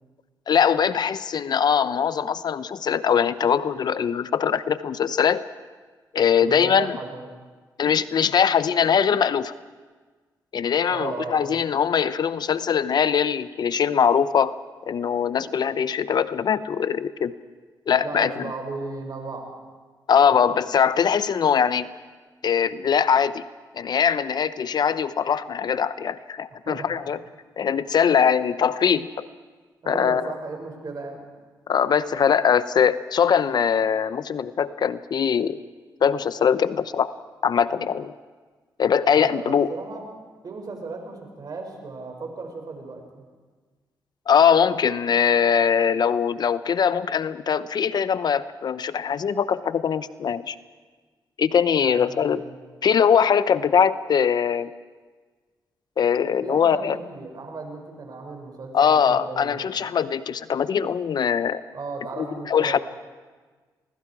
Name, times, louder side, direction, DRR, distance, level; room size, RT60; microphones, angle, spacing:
voice 1, 0.5-5.5 6.1-7.0 7.8-9.5 10.5-14.6 14.9-17.3 17.9-18.5 20.1-21.9 22.4-23.4 23.7-27.2 27.6-29.3 29.9-30.3 31.7-35.6 36.0-37.1 37.4-38.1 38.8-39.7 44.3-50.6 51.4-52.4 52.8-54.7 56.0-57.0 58.7-61.6 62.2-62.8, left 7 dB, 60° left, 14 dB, 0.8 m, -21 dB
voice 2, 6.3-7.3 10.9-11.6 18.0-19.5 26.6-27.0 29.8-31.2 39.1-40.0 40.4-43.2 51.8-52.6 56.4-59.6 61.7-62.8, right 3 dB, 55° right, 3 dB, 6.3 m, -35 dB
28.0 x 21.5 x 4.8 m, 1.4 s
cardioid pair, 60°, 8 cm